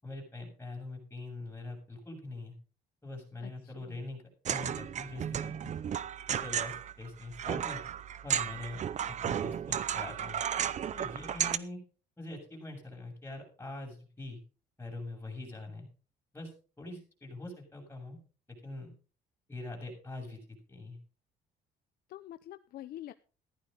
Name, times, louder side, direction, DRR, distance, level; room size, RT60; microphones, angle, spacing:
voice 1, 0.0-2.5 3.0-4.2 4.5-5.7 6.3-7.8 8.2-10.4 10.9-11.8 12.2-14.4 14.8-15.9 16.3-16.5 16.8-18.2 18.5-18.9 19.5-20.4 20.7-21.0, left 2 dB, 15° left, 0 dB, 7.5 m, -43 dB
voice 2, 3.4-4.0 22.1-23.1, left 13 dB, 65° left, 11 dB, 0.7 m, -46 dB
sound 1, 4.4-11.6, right 9 dB, 45° right, 0.7 m, -34 dB
15.0 x 11.5 x 3.9 m, 0.36 s
cardioid pair, 110°, 17 cm